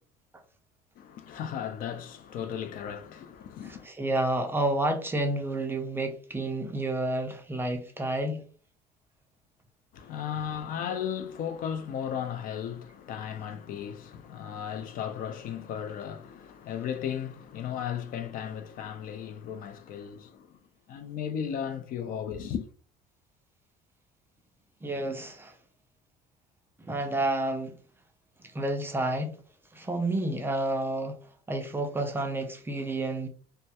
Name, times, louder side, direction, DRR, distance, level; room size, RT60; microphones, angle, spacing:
voice 1, 1.0-3.9 9.9-20.6 20.9-22.7, left 8 dB, 55° left, 0.4 m, -35 dB
voice 2, 3.6-8.4 24.8-25.5 26.8-27.8 28.4-29.4 29.7-31.2 31.5-33.3, right 1 dB, 15° right, 0.3 m, -30 dB
2.2 x 2.1 x 2.7 m
cardioid pair, 135°, 17 cm